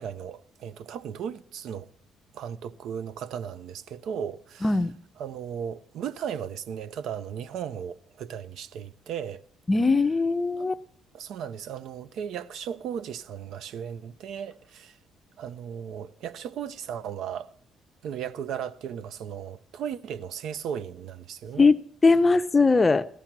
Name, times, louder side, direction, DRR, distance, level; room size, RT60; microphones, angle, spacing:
voice 1, 0.0-1.9 2.3-4.7 5.2-9.4 10.6-10.7 11.1-15.0 15.4-17.5 18.0-21.7, right 8 dB, 70° right, 0.6 m, -36 dB
voice 2, 4.6-4.9 9.7-10.8 21.6-23.1, left 3 dB, 20° left, 0.5 m, -20 dB
16.5 x 13.0 x 5.9 m
cardioid pair, 140°, 0 cm